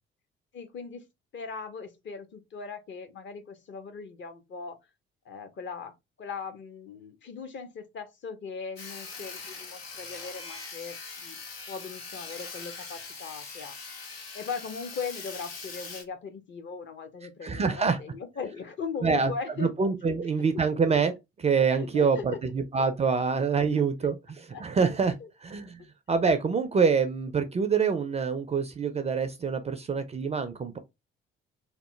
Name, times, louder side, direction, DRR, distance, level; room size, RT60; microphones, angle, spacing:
voice 1, 0.5-1.0 1.3-4.8 5.3-5.9 6.2-13.7 14.3-19.7 20.1-20.6 21.7-22.5 24.5-24.6 25.2-25.3, left 5 dB, 40° left, 0.7 m, -39 dB
Sawing, 8.8-16.0, left 4 dB, 80° left, 0.6 m, -42 dB
voice 2, 17.4-18.0 19.0-19.3 19.6-21.1 21.4-25.1 25.4-25.8 26.1-30.8, right 5 dB, 20° right, 0.4 m, -26 dB
2.8 x 2.1 x 3.1 m
figure-of-eight pair, 45°, 29 cm